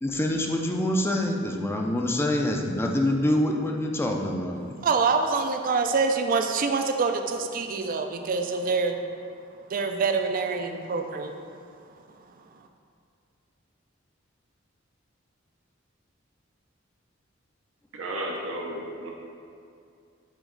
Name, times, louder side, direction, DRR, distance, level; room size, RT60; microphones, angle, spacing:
voice 1, 0.0-4.6, left 1 dB, 10° left, 1 dB, 0.4 m, -26 dB
voice 2, 4.8-9.0 9.7-11.4, right 4 dB, 45° right, 6 dB, 0.4 m, -25 dB
voice 3, 17.9-19.1, right 1 dB, 85° right, -1 dB, 0.8 m, -33 dB
8.2 x 3.1 x 3.8 m, 2.4 s
head